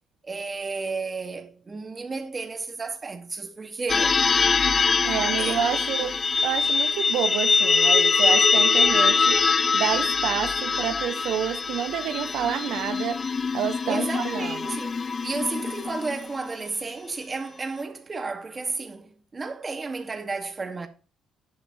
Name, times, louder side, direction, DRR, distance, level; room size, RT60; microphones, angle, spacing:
voice 1, 0.2-4.3 5.4-5.6 13.9-20.9, right 4 dB, 30° right, 1.9 m, -32 dB
sound 1, 3.9-16.4, left 5 dB, 35° left, 0.4 m, -23 dB
voice 2, 5.0-6.1 6.4-9.4 9.7-13.2 13.5-14.7, right 10 dB, 80° right, 0.6 m, -28 dB
11.0 x 9.9 x 3.1 m
cardioid pair, 90°, 0 cm